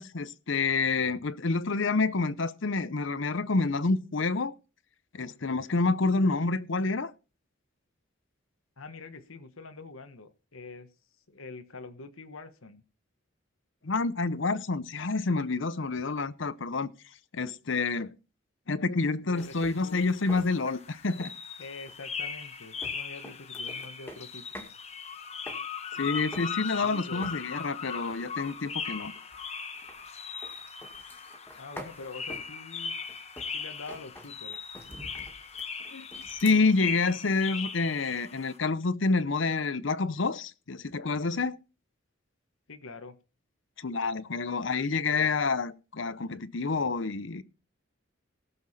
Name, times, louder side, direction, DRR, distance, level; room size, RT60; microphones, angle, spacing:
voice 1, 0.0-4.5 5.1-7.1 13.8-16.9 17.3-18.2 18.7-21.3 26.0-29.1 35.9-41.6 43.8-47.4, left 3 dB, 65° left, 0.8 m, -28 dB
voice 2, 8.8-10.9 11.3-12.8 19.3-20.1 21.6-24.7 26.8-27.3 31.5-32.9 33.5-34.6 42.7-43.2, left 3 dB, 85° left, 1.3 m, -45 dB
sound 1, 19.4-38.6, left 6 dB, 30° left, 1.2 m, -39 dB
sound 2, 19.4-24.8 25.1-26.9 27.2-27.7 28.0-36.6, left 1 dB, 10° left, 2.0 m, -48 dB
18.0 x 7.0 x 4.2 m
head